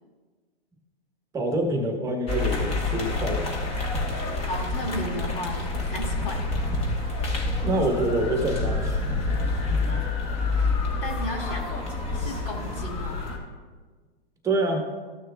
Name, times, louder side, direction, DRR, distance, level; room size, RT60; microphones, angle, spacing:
voice 1, 1.3-3.5 7.6-9.1 14.4-14.9, right 1 dB, 10° right, 3 dB, 1.2 m, -26 dB
sound 1, 2.3-13.4, left 3 dB, 20° left, 1.3 m, -28 dB
voice 2, 4.5-6.5 10.1-10.2 10.5-10.7 11.0-11.9 12.1-13.2, left 1 dB, 65° left, 1 dB, 2.2 m, -34 dB
13.5 x 6.3 x 2.3 m, 1.4 s
hypercardioid pair, 125°, 30 cm